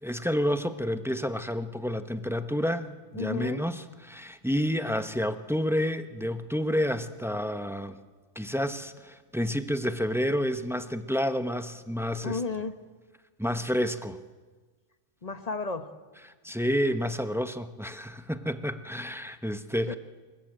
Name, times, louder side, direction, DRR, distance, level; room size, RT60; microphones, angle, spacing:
voice 1, 0.0-8.0 8.3-12.4 13.4-14.2 16.4-19.9, equal, ahead, 10 dB, 0.7 m, -29 dB
voice 2, 3.2-3.6 12.2-12.8 15.2-15.9 19.9-20.0, left 4 dB, 25° left, 10 dB, 1.3 m, -32 dB
26.0 x 22.0 x 9.0 m, 1.4 s
omnidirectional pair, 1.7 m